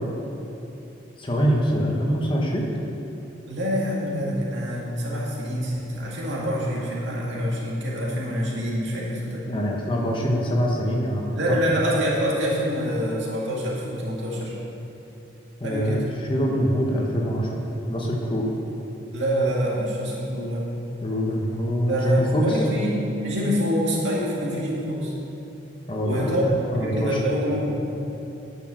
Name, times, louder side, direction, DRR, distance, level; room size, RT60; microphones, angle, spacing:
voice 1, 1.2-2.7 9.5-11.3 15.6-18.5 21.0-22.6 25.9-27.2, equal, 25° left, -2 dB, 1.2 m, -24 dB
voice 2, 3.5-9.4 11.4-14.6 15.6-16.0 19.1-20.7 21.9-25.1 26.0-26.4 26.7-27.7, equal, 70° right, -4 dB, 2.0 m, -26 dB
9.7 x 6.4 x 6.3 m, 2.9 s
head